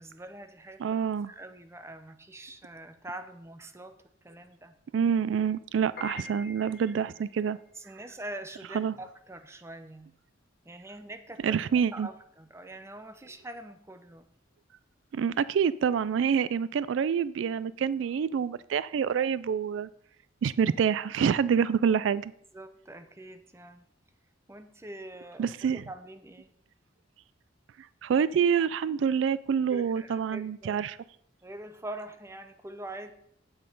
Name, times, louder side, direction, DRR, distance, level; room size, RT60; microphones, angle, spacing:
voice 1, 0.0-3.9 4.2-4.7 7.7-10.1 10.6-14.3 22.5-23.9 24.5-26.5 29.7-30.8 31.4-33.1, right 1 dB, 15° right, 0.7 m, -44 dB
voice 2, 0.8-1.3 4.9-7.6 8.7-8.9 11.4-12.1 15.1-19.9 20.4-22.3 25.4-25.8 28.0-31.0, right 7 dB, 75° right, 0.3 m, -27 dB
Piano, 5.8-16.2, left 3 dB, 50° left, 1.8 m, -49 dB
8.8 x 7.6 x 5.3 m
head